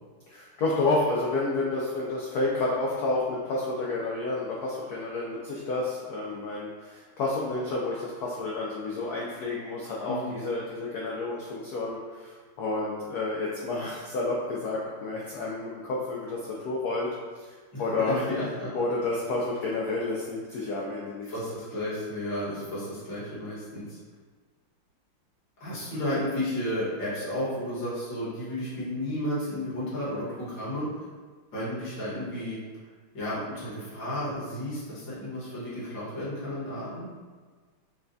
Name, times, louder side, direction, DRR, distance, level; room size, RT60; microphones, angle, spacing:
voice 1, 0.3-18.3 18.7-21.3, left 2 dB, 90° left, -5 dB, 0.8 m, -30 dB
voice 2, 10.0-10.4 17.7-18.7 21.3-24.0 25.6-30.9 31.5-32.6 33.1-37.1, left 1 dB, 60° left, -9 dB, 2.0 m, -32 dB
5.5 x 2.3 x 2.6 m, 1.5 s
omnidirectional pair, 2.3 m